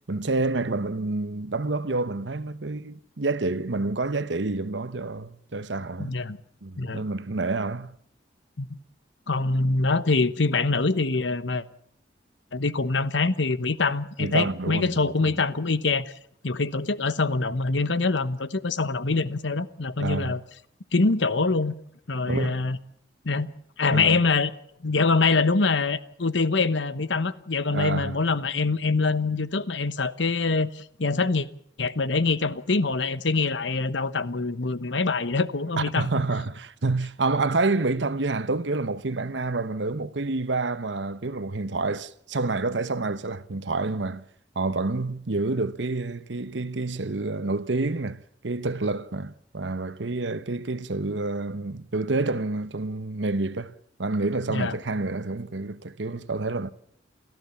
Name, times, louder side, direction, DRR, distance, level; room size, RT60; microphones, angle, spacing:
voice 1, 0.0-6.2 6.6-7.9 14.2-15.4 20.0-20.4 22.3-22.6 23.9-24.2 27.7-28.1 35.8-44.2 44.5-53.7 54.0-56.7, right 3 dB, 80° right, 1.0 m, -28 dB
voice 2, 6.0-6.4 6.8-7.0 8.6-8.7 9.3-11.6 12.5-16.1 16.4-20.4 20.9-21.7 22.1-22.8 23.2-23.5 23.8-24.5 24.8-31.5 31.8-36.1 54.5-54.7, left 3 dB, 85° left, 1.1 m, -24 dB
29.5 x 14.5 x 7.2 m
head